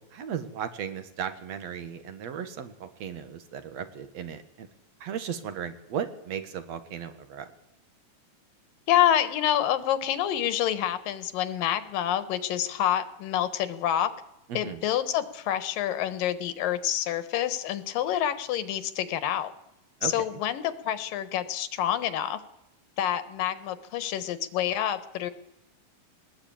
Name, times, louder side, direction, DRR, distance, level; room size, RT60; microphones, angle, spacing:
voice 1, 0.0-4.7 5.0-7.5 14.5-14.8 20.0-20.4, right 8 dB, 55° right, 10 dB, 2.5 m, -36 dB
voice 2, 8.9-14.1 14.5-19.5 20.0-22.4 23.0-25.3, left 11 dB, 80° left, 12 dB, 3.0 m, -27 dB
21.0 x 20.0 x 8.8 m, 0.88 s
omnidirectional pair, 3.9 m